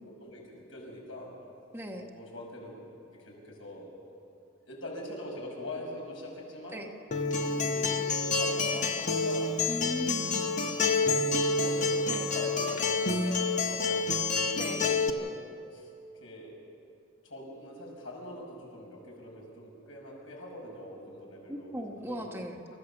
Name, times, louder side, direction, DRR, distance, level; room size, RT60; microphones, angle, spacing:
voice 1, 0.0-1.3 1.9-2.7 3.2-3.9 4.7-6.8 7.3-9.6 10.3-10.4 10.7-14.3 14.9-15.3 15.7-15.9 16.2-16.6 17.2-22.2, left 1 dB, 75° left, -1 dB, 6.2 m, -43 dB
voice 2, 1.7-2.1 6.7-6.9 9.7-10.5 12.1-12.3 14.6-14.9 21.5-22.6, equal, 10° right, 2 dB, 1.3 m, -38 dB
Acoustic guitar, 7.1-15.1, left 3 dB, 40° left, 1.1 m, -28 dB
28.0 x 14.5 x 7.2 m, 2.5 s
head